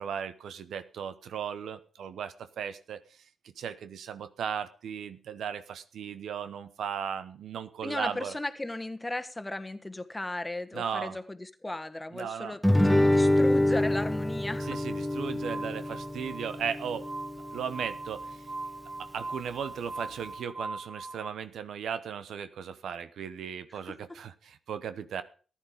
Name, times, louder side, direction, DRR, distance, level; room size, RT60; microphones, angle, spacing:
voice 1, 0.0-3.2 3.6-8.4 10.7-11.2 12.1-12.6 14.6-17.1 17.5-18.4 19.0-25.2, right 7 dB, 80° right, 12 dB, 0.9 m, -36 dB
voice 2, 7.8-14.8 23.9-24.2, left 2 dB, 15° left, 9 dB, 1.4 m, -36 dB
Guitar, 12.6-17.7, left 1 dB, ahead, 1.3 m, -26 dB
Glass, 14.6-21.3, right 2 dB, 50° right, 2.3 m, -41 dB
14.5 x 10.0 x 5.1 m, 0.39 s
cardioid pair, 60°, 0 cm